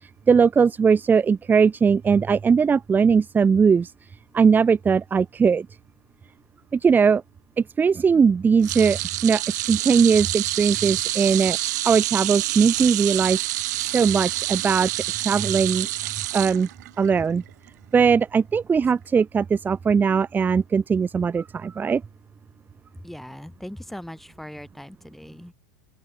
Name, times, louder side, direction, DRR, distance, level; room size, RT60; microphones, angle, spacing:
voice 1, 0.0-3.9 4.3-5.7 6.7-7.2 7.6-11.6 11.8-13.4 13.9-16.7 17.0-17.4 17.9-22.0, right 6 dB, 20° right, 1.1 m, -20 dB
sound 1, 8.6-17.1 17.5-17.7 18.9-19.0, right 17 dB, 70° right, 3.7 m, -27 dB
voice 2, 23.0-25.5, left 1 dB, ahead, 7.7 m, -39 dB
open air
hypercardioid pair, 105°, 10 cm